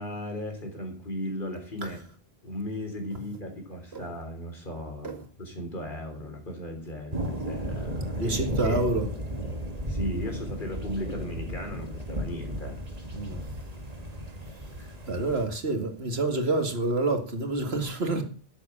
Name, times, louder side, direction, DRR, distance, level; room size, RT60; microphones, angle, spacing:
voice 1, 0.0-2.0 2.4-5.1 5.4-8.4 8.6-8.8 9.9-12.8 14.8-14.9 15.7-15.8, left 1 dB, 55° left, 4.0 m, -36 dB
sound 1, 7.1-15.5, right 1 dB, 40° right, 1.9 m, -34 dB
voice 2, 8.2-9.1 13.1-13.5 15.1-18.2, right 2 dB, 90° right, 2.3 m, -28 dB
12.0 x 8.0 x 7.2 m
omnidirectional pair, 1.0 m